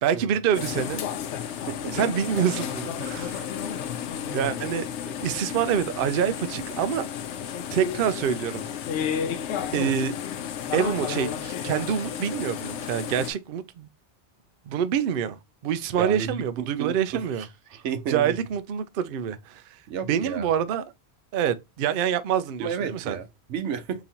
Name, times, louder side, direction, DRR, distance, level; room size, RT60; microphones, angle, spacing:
voice 1, 0.0-1.0 1.9-3.5 4.3-7.0 7.7-8.7 9.7-10.1 10.7-13.9 14.7-15.4 15.6-17.4 18.1-19.6 20.1-20.8 21.3-23.2, right 8 dB, 60° right, 0.6 m, -26 dB
sound 1, 0.5-13.3, left 8 dB, 85° left, 0.9 m, -32 dB
voice 2, 1.7-2.0 16.0-18.4 19.9-20.5 22.6-24.0, right 7 dB, 85° right, 1.0 m, -32 dB
4.0 x 3.0 x 2.7 m
omnidirectional pair, 1.2 m